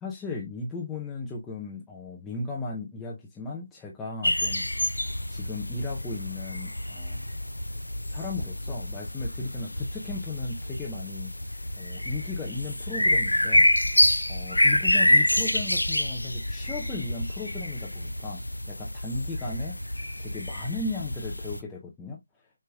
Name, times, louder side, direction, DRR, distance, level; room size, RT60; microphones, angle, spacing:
voice 1, 0.0-4.7 5.3-7.3 8.1-11.3 11.8-13.7 13.9-19.8 20.2-22.2, left 3 dB, 5° left, 0.7 m, -36 dB
sound 1, 4.2-21.6, left 1 dB, 85° left, 0.6 m, -27 dB
6.8 x 3.3 x 2.2 m
figure-of-eight pair, 160°, 0 cm